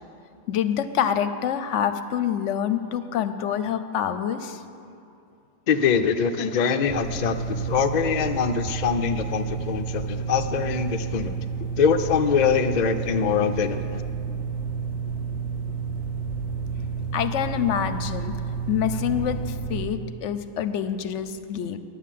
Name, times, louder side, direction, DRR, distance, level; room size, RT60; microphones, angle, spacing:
voice 1, 0.5-4.6 17.1-18.4 18.7-21.8, left 9 dB, 70° left, 11 dB, 0.9 m, -26 dB
voice 2, 5.7-11.3 11.8-14.0, left 6 dB, 55° left, 7 dB, 0.5 m, -23 dB
sound 1, 6.9-19.8, right 5 dB, 30° right, 2.3 m, -30 dB
9.9 x 8.4 x 7.5 m, 2.5 s
omnidirectional pair, 1.3 m